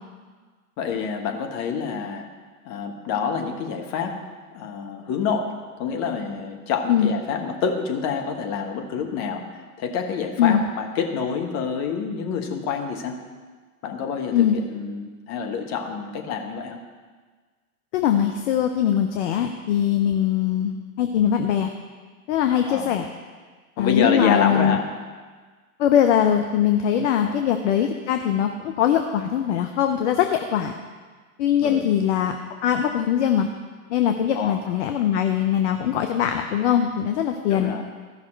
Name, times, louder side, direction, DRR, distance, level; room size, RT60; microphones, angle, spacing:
voice 1, 0.8-2.3 2.6-4.2 4.5-5.5 5.8-13.2 13.8-16.8 22.7-22.9 23.8-24.8 27.2-27.5 31.6-31.8 34.3-34.6 37.5-37.9, left 6 dB, 35° left, 3 dB, 1.4 m, -27 dB
voice 2, 17.9-21.7 22.3-23.1 23.8-24.8 25.8-30.7 31.4-32.4 32.6-33.5 33.9-37.7, left 9 dB, 50° left, 6 dB, 0.8 m, -21 dB
14.5 x 5.7 x 4.5 m, 1.5 s
hypercardioid pair, 105°, 46 cm